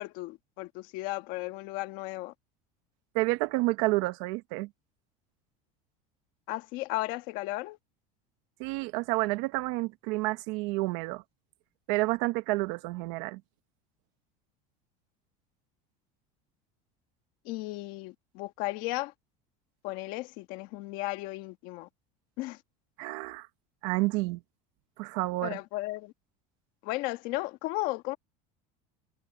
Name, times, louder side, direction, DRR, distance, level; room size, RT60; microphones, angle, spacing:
voice 1, 0.0-2.3 6.5-7.8 17.4-19.1 19.8-21.9 22.4-22.6 25.4-26.1 26.8-28.2, left 19 dB, 55° left, 1.5 m, -35 dB
voice 2, 3.1-4.7 8.6-11.2 11.9-13.4 23.0-23.5 23.8-24.4 25.0-25.6, right 22 dB, 65° right, 1.1 m, -29 dB
cardioid pair, 170°, 17 cm